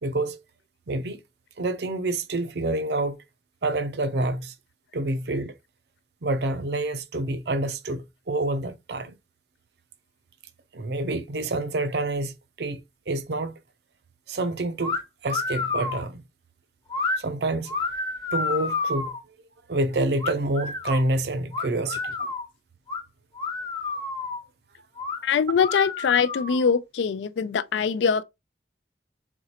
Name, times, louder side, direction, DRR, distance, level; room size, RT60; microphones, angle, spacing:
voice 1, 0.0-0.4 0.9-1.2 1.6-3.2 3.6-4.5 4.9-5.5 6.2-9.1 10.7-12.8 13.1-13.6 14.3-16.2 17.2-17.7 18.3-19.1 19.7-22.3, right 2 dB, 65° right, 0.6 m, -27 dB
sound 1, 14.8-15.0 15.3-16.0 16.9-17.2 17.7-19.2 20.2-21.0 21.5-22.5 22.9-23.0 23.4-24.4 25.0-25.2 25.6-26.7, left 4 dB, 25° left, 0.8 m, -30 dB
voice 2, 25.2-28.2, left 6 dB, 90° left, 0.4 m, -23 dB
4.4 x 3.7 x 2.8 m
head